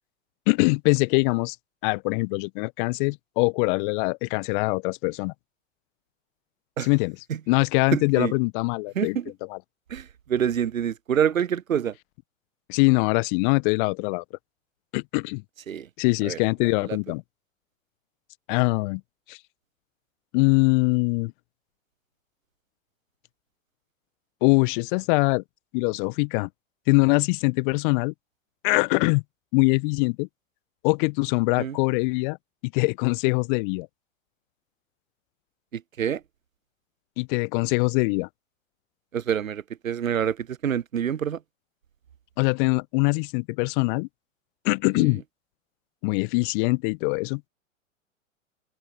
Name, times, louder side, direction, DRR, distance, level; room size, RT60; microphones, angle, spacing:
voice 1, 0.5-1.6 1.8-5.3 6.8-7.1 7.5-9.2 9.5-9.6 12.7-14.2 14.9-15.4 16.0-17.2 18.5-19.0 19.3-19.4 20.3-21.3 24.4-25.4 25.7-26.5 26.9-28.1 28.6-29.2 29.5-30.3 30.8-32.4 32.6-33.9 37.2-38.3 42.4-44.1 44.6-45.2 46.0-47.4, left 31 dB, 40° left, 1.3 m, -23 dB
voice 2, 7.9-8.3 9.0-9.3 9.9-12.0 15.7-15.9 16.2-16.4 16.8-17.0 31.6-31.8 35.7-36.2 39.1-41.4 45.0-45.1, right 8 dB, 90° right, 0.6 m, -27 dB
open air
figure-of-eight pair, 100°, 39 cm